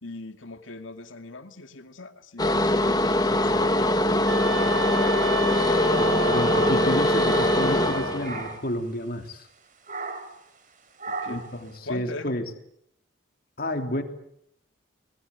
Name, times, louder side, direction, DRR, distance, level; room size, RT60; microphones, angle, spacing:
voice 1, 0.0-3.8 11.1-11.4 11.8-12.4, left 3 dB, 85° left, 7 dB, 2.4 m, -40 dB
sound 1, 2.4-8.5, left 1 dB, 20° left, 1.4 m, -22 dB
sound 2, 4.3-8.4, right 2 dB, 75° right, 1.6 m, -32 dB
sound 3, 5.5-7.9 8.2-8.7 9.9-10.4 11.0-11.6, right 3 dB, 45° right, 3.4 m, -36 dB
voice 2, 5.9-9.5 11.3-12.5 13.6-14.0, left 1 dB, 50° left, 5 dB, 3.0 m, -30 dB
27.5 x 21.0 x 8.4 m, 0.72 s
head